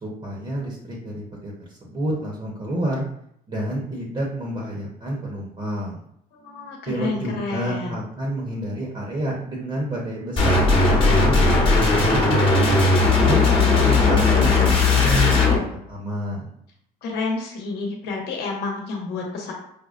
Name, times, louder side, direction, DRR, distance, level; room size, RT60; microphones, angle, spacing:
voice 1, 0.0-3.0 3.5-6.0 6.9-12.6 12.9-13.4 13.9-15.5 15.9-16.5, right 1 dB, 30° right, -2 dB, 0.8 m, -29 dB
voice 2, 6.3-8.0 17.0-19.5, left 3 dB, 80° left, -1 dB, 0.9 m, -29 dB
sound 1, 10.4-15.5, left 3 dB, 35° left, 1.0 m, -17 dB
4.9 x 2.2 x 2.4 m, 0.72 s
cardioid pair, 110°, 17 cm